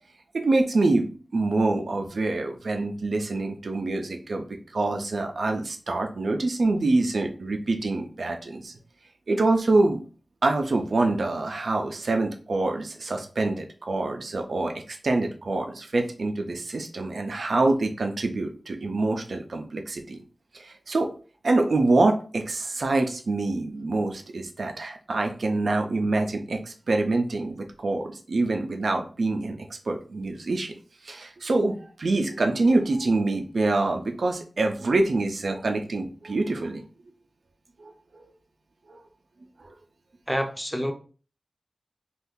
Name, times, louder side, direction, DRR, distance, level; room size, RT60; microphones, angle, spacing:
voice 1, 0.3-4.4 4.7-8.7 9.3-10.0 10.4-20.2 20.5-21.1 21.4-30.7 31.0-36.8 37.8-37.9 38.9-39.0 39.6-39.7, right 2 dB, 85° right, 0.4 m, -25 dB
voice 2, 40.3-40.9, equal, ahead, 0.5 m, -27 dB
2.6 x 2.4 x 3.6 m
wide cardioid pair, 90°, 0 cm